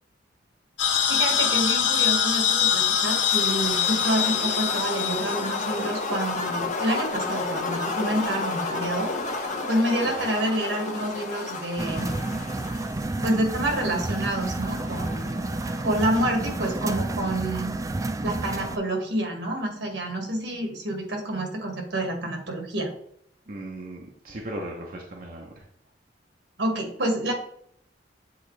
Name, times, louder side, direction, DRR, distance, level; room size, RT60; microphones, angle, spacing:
sound 1, 0.8-6.1, left 8 dB, 90° left, 0.7 m, -24 dB
voice 1, 1.1-9.1 9.7-12.1 13.2-15.4 15.8-17.7 18.2-22.9 26.6-27.3, right 1 dB, 75° right, 2 dB, 1.8 m, -28 dB
sound 2, 2.7-17.0, left 3 dB, 40° left, 0.9 m, -33 dB
sound 3, 11.8-18.8, right 2 dB, 20° right, 0.3 m, -30 dB
voice 2, 23.5-25.6, right 1 dB, 50° right, -1 dB, 0.8 m, -37 dB
8.0 x 3.8 x 3.2 m, 0.68 s
head